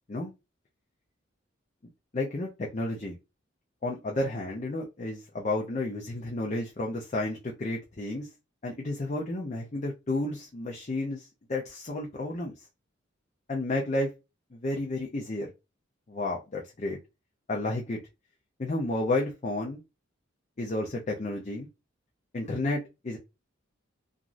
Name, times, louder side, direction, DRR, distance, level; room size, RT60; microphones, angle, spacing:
voice 1, 2.1-3.2 3.8-8.3 8.6-12.5 13.5-14.1 14.5-15.5 16.1-17.0 17.5-18.0 18.6-19.8 20.6-21.7 22.3-23.2, left 2 dB, 35° left, -1 dB, 0.5 m, -31 dB
3.0 x 2.5 x 2.5 m, 0.25 s
head